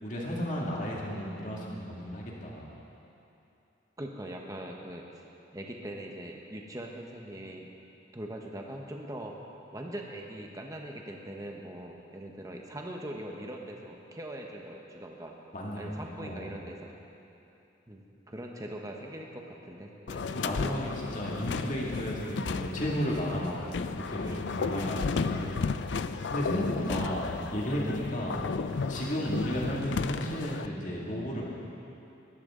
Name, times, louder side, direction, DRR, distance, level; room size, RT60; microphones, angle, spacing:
voice 1, 0.0-2.7 15.5-16.5 20.3-25.8 26.3-28.4 28.9-31.4, equal, 40° left, -4 dB, 2.3 m, -33 dB
voice 2, 4.0-5.0 5.5-7.7 8.1-9.3 9.7-15.3 15.8-16.9 17.9-20.7 24.2-24.4 24.9-25.2 26.9-27.4, right 1 dB, 20° right, 1 dB, 1.0 m, -41 dB
sound 1, 20.1-30.7, left 4 dB, 65° left, 0.4 m, -34 dB
21.0 x 12.5 x 3.8 m, 2.9 s
head